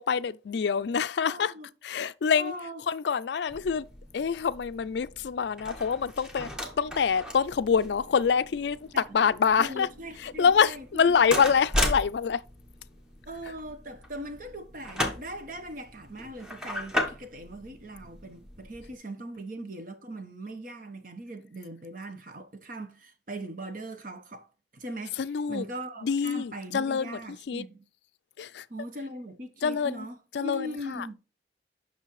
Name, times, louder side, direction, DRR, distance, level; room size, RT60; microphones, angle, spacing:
voice 1, 0.0-1.5 1.8-2.5 2.9-3.9 4.1-6.5 6.8-9.9 10.2-12.4 25.2-25.6 26.0-27.7 28.4-28.7 29.6-30.1 30.3-31.1, left 6 dB, 65° left, 0.4 m, -26 dB
voice 2, 1.3-1.7 2.4-2.8 8.9-9.0 9.6-11.0 13.3-24.5 24.7-25.2 25.5-27.8 28.7-31.1, right 1 dB, 45° right, 1.2 m, -40 dB
sound 1, 3.5-18.9, left 1 dB, 5° right, 1.1 m, -36 dB
8.1 x 6.0 x 3.2 m
head